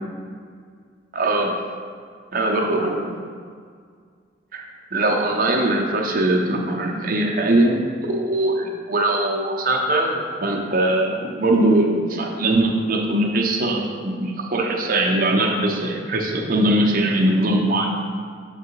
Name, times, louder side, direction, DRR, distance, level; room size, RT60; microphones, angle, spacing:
voice 1, 1.1-1.6 2.3-3.1 4.5-4.6 4.9-17.9, right 1 dB, 50° right, 0 dB, 0.7 m, -21 dB
6.6 x 3.7 x 4.5 m, 2.1 s
head